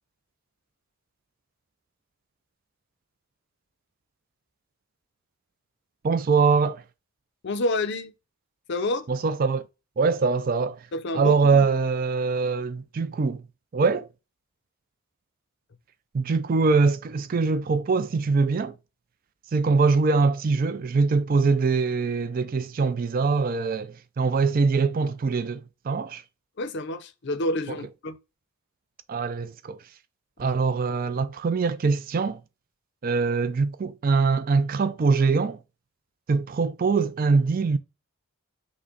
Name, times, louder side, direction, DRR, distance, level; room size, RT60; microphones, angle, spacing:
voice 1, 6.0-6.8 9.1-9.6 10.0-10.9 11.1-13.5 13.7-14.1 16.1-18.8 19.5-26.2 29.1-29.8 30.4-32.4 33.0-35.6 36.3-37.8, right 4 dB, 40° right, 0.4 m, -23 dB
voice 2, 7.4-8.1 8.7-9.1 10.9-11.7 26.6-28.2 30.4-30.5, left 2 dB, 55° left, 0.5 m, -29 dB
6.0 x 2.1 x 3.8 m
head